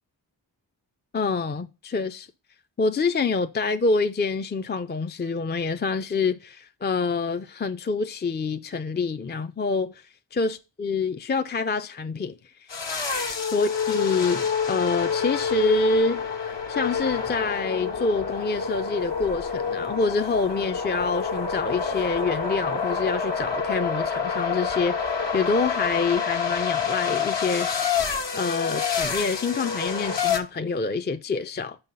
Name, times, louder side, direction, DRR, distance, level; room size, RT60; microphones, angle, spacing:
voice 1, 1.1-2.3 2.8-12.7 13.4-27.8 28.3-31.8, left 4 dB, 25° left, 0.4 m, -26 dB
sound 1, 12.7-30.4, left 6 dB, 70° left, 1.4 m, -27 dB
5.8 x 5.6 x 5.5 m
cardioid pair, 55°, 46 cm